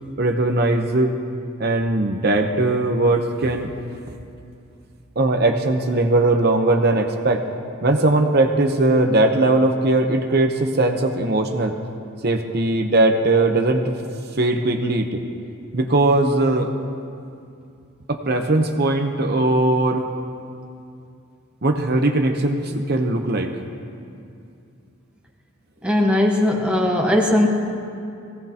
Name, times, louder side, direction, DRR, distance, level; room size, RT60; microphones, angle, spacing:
voice 1, 0.2-1.1 1.6-3.7 5.2-7.4 7.8-11.7 12.2-14.0 14.4-15.2 15.7-16.7 18.1-20.1 21.6-23.5, right 2 dB, 50° right, 3 dB, 0.8 m, -19 dB
voice 2, 25.8-27.5, left 1 dB, 5° right, -1 dB, 1.3 m, -18 dB
23.0 x 17.0 x 2.9 m, 2.5 s
head